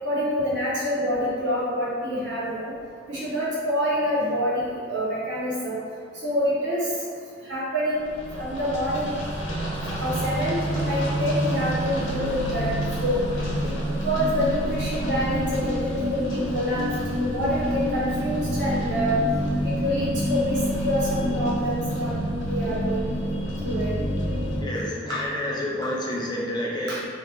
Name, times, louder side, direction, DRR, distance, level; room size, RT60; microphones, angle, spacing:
voice 1, 0.0-2.7 3.1-5.8 6.2-6.9 7.5-8.1 8.3-9.1 10.0-12.7 13.0-13.2 13.6-13.8 14.0-16.9 17.2-19.2 19.6-22.1 22.5-23.0 23.6-24.0 25.1-25.2 25.8-25.9 26.9-27.0, equal, 65° right, -8 dB, 1.1 m, -26 dB
sound 1, 8.0-24.6, equal, 80° left, 0.8 m, -28 dB
voice 2, 24.6-27.1, left 1 dB, 20° left, -4 dB, 0.5 m, -29 dB
2.9 x 2.5 x 3.3 m, 2.2 s
head